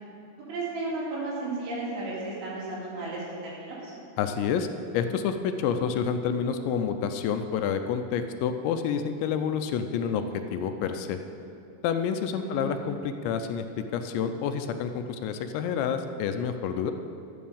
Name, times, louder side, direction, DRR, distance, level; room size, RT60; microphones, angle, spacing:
voice 1, 0.5-3.9 12.4-12.8, right 2 dB, 80° right, -6 dB, 5.2 m, -34 dB
voice 2, 4.2-4.7 4.9-11.2 11.8-13.7 13.9-16.9, left 7 dB, 80° left, 7 dB, 2.8 m, -28 dB
11.0 x 9.5 x 7.0 m, 2.6 s
omnidirectional pair, 5.3 m